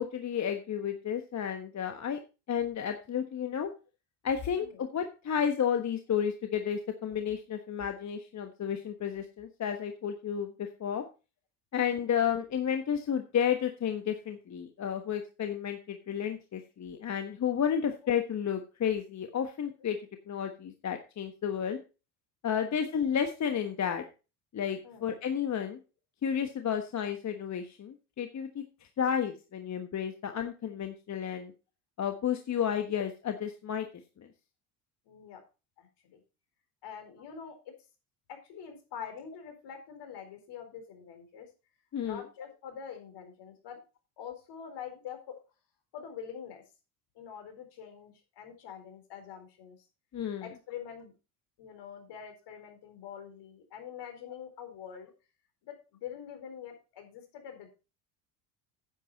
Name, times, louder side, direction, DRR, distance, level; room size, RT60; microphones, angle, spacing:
voice 1, 0.0-2.2 2.5-3.7 4.2-11.0 11.7-20.0 20.3-21.8 22.4-24.0 24.5-25.8 26.2-28.6 29.0-31.5 32.0-33.9 34.2-34.3 41.9-42.2 50.1-50.5, left 8 dB, 35° left, 6 dB, 1.3 m, -32 dB
voice 2, 24.8-25.2 35.1-35.4 35.8-36.2 36.8-37.7 38.3-41.5 42.0-43.8 44.2-45.4 45.9-46.6 47.1-49.8 50.4-51.1 51.6-55.1 55.6-57.7, left 8 dB, 60° left, 6 dB, 4.3 m, -45 dB
10.0 x 8.5 x 4.1 m, 0.31 s
hypercardioid pair, 80°, 46 cm